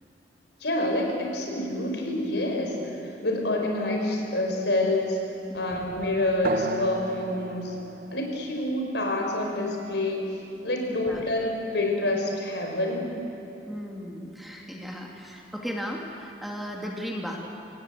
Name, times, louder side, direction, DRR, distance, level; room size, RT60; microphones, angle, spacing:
voice 1, 0.6-5.2 5.5-7.8 8.1-13.1, left 1 dB, 80° left, 2 dB, 4.6 m, -27 dB
voice 2, 5.5-5.9 10.9-11.2 13.7-17.4, equal, ahead, -1 dB, 2.1 m, -36 dB
sound 1, 6.4-11.5, right 2 dB, 50° right, 0.9 m, -37 dB
25.5 x 18.0 x 8.1 m, 2.9 s
head